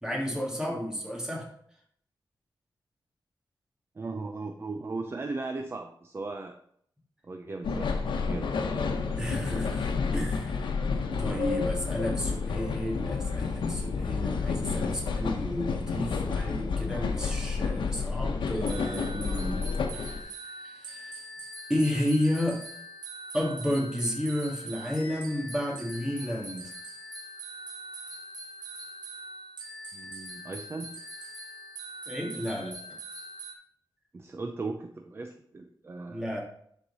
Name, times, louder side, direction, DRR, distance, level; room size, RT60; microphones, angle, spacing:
voice 1, 0.0-1.5 9.2-10.7 11.2-19.7 19.9-21.2 21.7-22.6 23.3-26.7 32.1-32.8 36.1-36.4, equal, 10° right, -3 dB, 2.7 m, -32 dB
voice 2, 4.0-6.6 7.2-7.9 8.3-8.5 29.9-30.9 34.1-36.3, right 3 dB, 30° right, 5 dB, 0.6 m, -37 dB
sound 1, 7.6-20.2, left 4 dB, 90° left, 0.9 m, -30 dB
sound 2, 18.7-33.5, right 1 dB, 70° right, 2.1 m, -43 dB
11.5 x 4.5 x 4.2 m, 0.66 s
wide cardioid pair, 120°, 8 cm